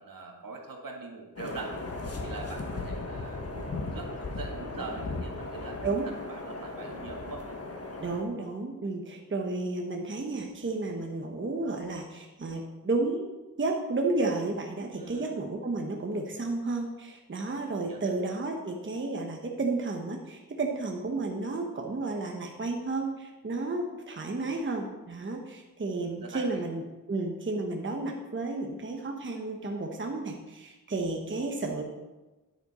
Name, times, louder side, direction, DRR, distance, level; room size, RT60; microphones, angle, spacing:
voice 1, 0.0-1.7 2.2-7.4 14.9-15.3 17.8-18.1 26.0-26.6, right 3 dB, 75° right, 1 dB, 1.8 m, -43 dB
sound 1, 1.4-8.2, left 2 dB, 45° left, 1.3 m, -37 dB
voice 2, 8.0-13.3 13.6-26.8 27.1-31.8, right 3 dB, 35° right, 1 dB, 1.0 m, -32 dB
9.9 x 8.7 x 4.2 m, 1.1 s
wide cardioid pair, 135°, 34 cm